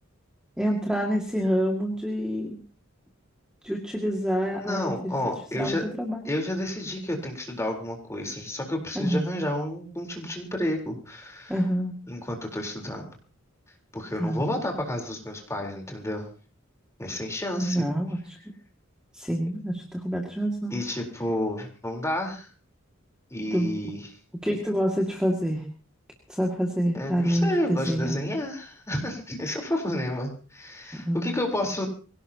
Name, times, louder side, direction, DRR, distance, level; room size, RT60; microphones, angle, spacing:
voice 1, 0.6-2.6 3.6-5.1 5.6-6.2 9.0-9.2 11.5-11.9 14.2-14.4 17.6-18.4 19.1-20.8 23.5-23.9 24.4-25.6 26.3-28.2 30.9-31.3, equal, 5° right, 0 dB, 2.1 m, -27 dB
voice 2, 4.5-5.8 6.2-11.6 12.1-13.1 13.9-16.3 17.0-17.9 20.7-22.5 23.3-24.1 26.9-31.9, left 1 dB, 15° left, 1 dB, 4.0 m, -30 dB
24.0 x 17.5 x 2.9 m, 0.38 s
head